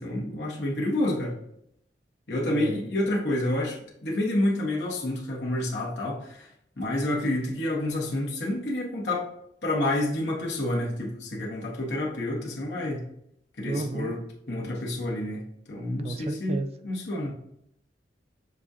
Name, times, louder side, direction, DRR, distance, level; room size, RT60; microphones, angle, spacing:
voice 1, 0.0-1.4 2.3-6.5 6.8-9.3 9.6-13.1 13.6-14.2 14.5-17.3, left 1 dB, 70° left, -3 dB, 1.4 m, -29 dB
voice 2, 2.4-2.8 13.7-14.1 16.0-16.7, right 2 dB, 35° right, 8 dB, 0.3 m, -32 dB
7.1 x 2.4 x 2.7 m, 0.73 s
head